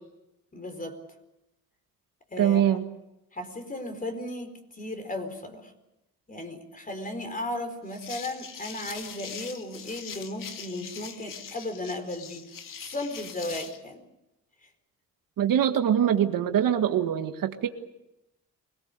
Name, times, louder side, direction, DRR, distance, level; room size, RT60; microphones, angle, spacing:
voice 1, 0.5-1.0 2.3-2.6 3.3-5.7 6.3-12.5 12.8-14.0, left 1 dB, 25° left, 7 dB, 4.4 m, -35 dB
voice 2, 2.4-2.8 15.4-17.7, right 9 dB, 75° right, 7 dB, 1.8 m, -23 dB
sound 1, 7.9-13.8, left 7 dB, 70° left, 2.4 m, -42 dB
24.5 x 18.5 x 8.2 m, 0.91 s
cardioid pair, 95°, 33 cm